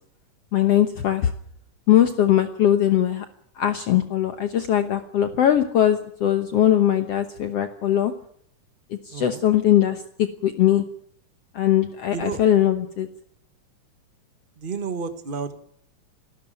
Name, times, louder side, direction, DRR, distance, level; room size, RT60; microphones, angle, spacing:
voice 1, 0.5-1.3 1.9-3.3 3.6-8.1 8.9-10.8 11.5-13.1, left 11 dB, 60° left, 8 dB, 1.9 m, -20 dB
voice 2, 9.1-9.4 12.1-12.4 14.6-15.6, right 6 dB, 85° right, 9 dB, 0.4 m, -31 dB
28.0 x 13.0 x 9.0 m, 0.66 s
omnidirectional pair, 3.5 m